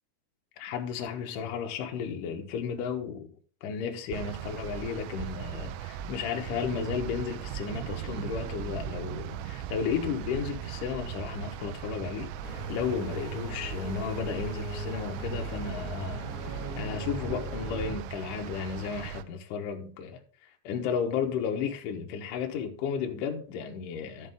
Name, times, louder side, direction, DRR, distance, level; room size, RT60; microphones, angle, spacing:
voice 1, 0.6-3.3 3.6-20.2 20.6-24.3, left 7 dB, 80° left, 1.9 m, -33 dB
sound 1, 4.1-19.2, right 11 dB, 85° right, 2.5 m, -39 dB
sound 2, 12.4-18.0, right 1 dB, ahead, 2.1 m, -38 dB
14.5 x 5.1 x 3.6 m
omnidirectional pair, 5.6 m